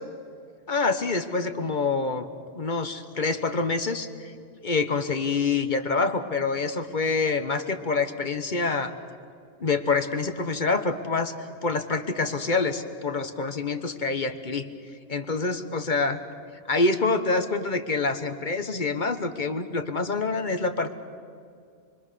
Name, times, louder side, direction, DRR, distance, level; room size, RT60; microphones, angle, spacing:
voice 1, 0.7-2.3 2.5-4.3 4.6-8.9 9.6-14.7 15.1-16.2 16.7-20.9, left 4 dB, 45° left, 8 dB, 1.3 m, -26 dB
25.5 x 24.5 x 6.9 m, 2.3 s
omnidirectional pair, 1.1 m